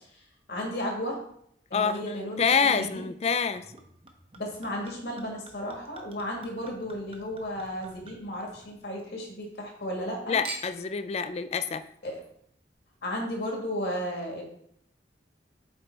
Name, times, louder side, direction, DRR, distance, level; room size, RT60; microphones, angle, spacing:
voice 1, 0.5-1.2 1.7-3.0 4.4-10.4 12.0-12.2 13.0-14.4, equal, 65° left, 0 dB, 1.8 m, -34 dB
voice 2, 1.7-3.6 10.3-11.8, left 6 dB, 35° left, 11 dB, 0.4 m, -27 dB
Chink clink / Liquid, 3.6-9.1 9.4-10.1 10.4-11.0 11.7-11.8, right 3 dB, 30° right, 0.8 m, -46 dB
7.9 x 3.3 x 4.5 m, 0.69 s
head